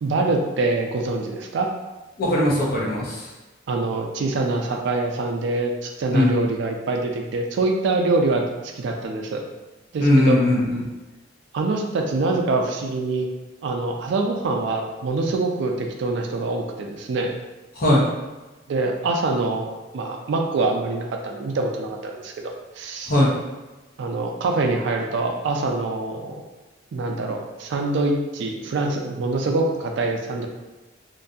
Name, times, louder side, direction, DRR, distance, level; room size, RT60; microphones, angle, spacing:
voice 1, 0.0-1.7 3.7-9.4 9.9-10.4 11.5-13.3 13.6-17.3 18.7-23.2 24.0-26.4 26.9-30.5, right 3 dB, 65° right, 3 dB, 0.3 m, -25 dB
voice 2, 2.2-3.3 6.1-6.4 10.0-10.8 17.8-18.0 23.1-23.3, left 1 dB, 50° left, -5 dB, 0.7 m, -19 dB
2.5 x 2.2 x 2.5 m, 1.1 s
head